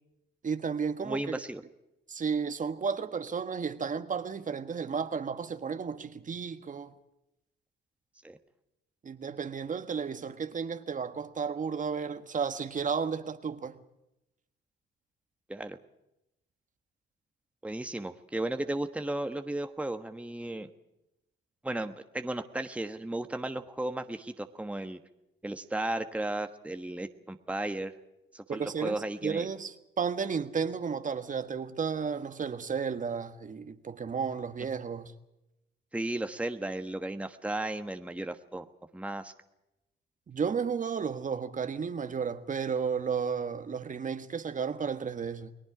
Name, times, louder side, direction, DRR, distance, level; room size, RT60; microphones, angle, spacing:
voice 1, 0.4-1.4 2.1-6.9 9.0-13.8 28.5-35.1 40.3-45.5, right 6 dB, 40° right, 1.5 m, -33 dB
voice 2, 1.0-1.6 8.2-8.4 15.5-15.8 17.6-20.7 21.6-25.0 25.4-27.9 28.3-29.5 35.9-38.7 38.9-39.3, right 1 dB, 5° right, 1.3 m, -34 dB
29.5 x 19.5 x 5.0 m
cardioid pair, 90°, 20 cm